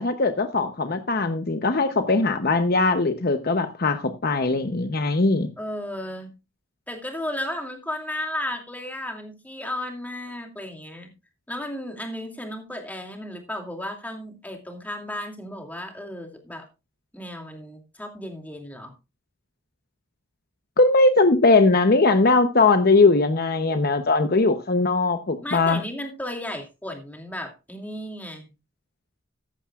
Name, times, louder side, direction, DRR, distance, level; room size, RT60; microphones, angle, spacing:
voice 1, 0.0-5.5 20.8-25.8, left 3 dB, 50° left, 0.8 m, -20 dB
voice 2, 5.6-6.3 6.9-11.1 11.5-16.7 17.1-18.9 25.4-28.5, left 1 dB, 10° left, 2.5 m, -34 dB
14.5 x 11.5 x 2.4 m
head